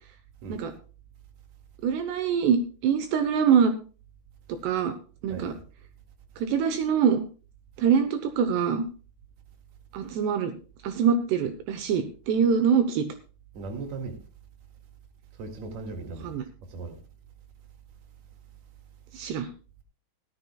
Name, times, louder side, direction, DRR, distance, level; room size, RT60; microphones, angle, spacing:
voice 1, 1.8-2.6 2.8-3.7 4.5-4.9 5.2-5.5 6.4-7.2 7.8-8.8 9.9-10.5 10.8-13.1 16.2-16.4 19.1-19.5, right 7 dB, 80° right, 3.0 m, -24 dB
voice 2, 5.3-5.6 13.5-14.2 15.4-16.4 16.7-17.0, right 3 dB, 50° right, 2.8 m, -37 dB
16.5 x 13.5 x 2.3 m
omnidirectional pair, 4.9 m